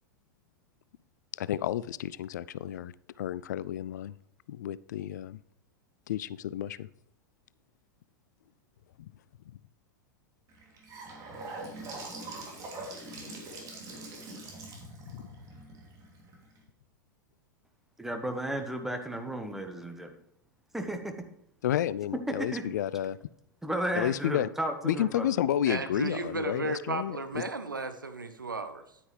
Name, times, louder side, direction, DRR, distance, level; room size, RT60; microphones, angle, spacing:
voice 1, 1.4-2.9 3.2-4.1 4.5-5.4 6.1-6.9 9.0-9.1 13.2-13.3 15.1-15.2 21.6-23.2 23.9-24.5 24.8-27.4, left 11 dB, 60° left, 19 dB, 0.3 m, -31 dB
Gurgling / Sink (filling or washing) / Bathtub (filling or washing), 10.5-16.6, right 2 dB, 35° right, 3.0 m, -43 dB
voice 2, 18.0-20.1 20.7-21.1 22.3-22.6 23.6-25.3, right 1 dB, 5° right, 6 dB, 1.3 m, -33 dB
voice 3, 25.7-29.0, right 3 dB, 80° right, 9 dB, 1.0 m, -34 dB
10.0 x 9.4 x 3.3 m, 0.74 s
figure-of-eight pair, 90°, 11 cm